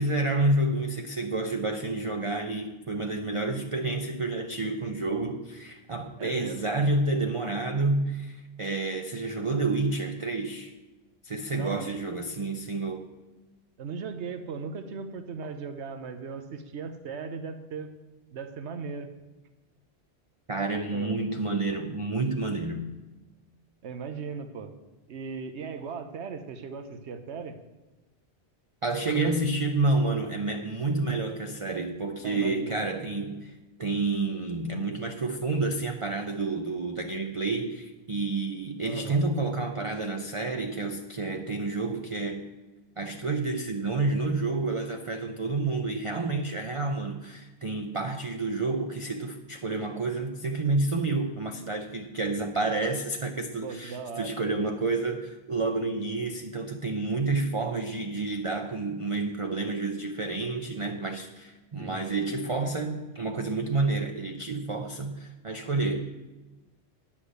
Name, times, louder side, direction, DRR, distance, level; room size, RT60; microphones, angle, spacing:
voice 1, 0.0-10.7 11.2-13.1 20.5-22.9 28.8-42.5 43.0-66.0, right 3 dB, 35° right, 4 dB, 0.6 m, -29 dB
voice 2, 6.2-6.6 11.5-11.9 13.8-17.9 18.3-19.1 20.9-21.1 23.8-24.7 25.1-27.6 29.2-29.3 32.2-32.8 38.8-39.2 53.6-54.4 61.8-62.0, right 5 dB, 85° right, 9 dB, 1.1 m, -38 dB
9.9 x 5.9 x 8.0 m, 1.1 s
omnidirectional pair, 1.1 m